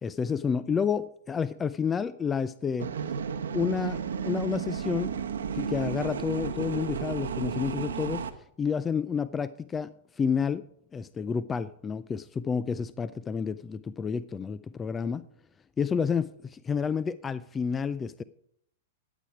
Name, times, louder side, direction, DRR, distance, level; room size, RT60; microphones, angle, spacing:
voice 1, 0.0-2.9 3.5-5.2 5.5-8.2 8.6-10.6 10.9-15.3 15.8-18.2, left 6 dB, 20° left, 0.4 m, -30 dB
sound 1, 2.8-8.3, right 7 dB, 90° right, 1.0 m, -33 dB
12.0 x 8.4 x 4.8 m
hypercardioid pair, 125°, 0 cm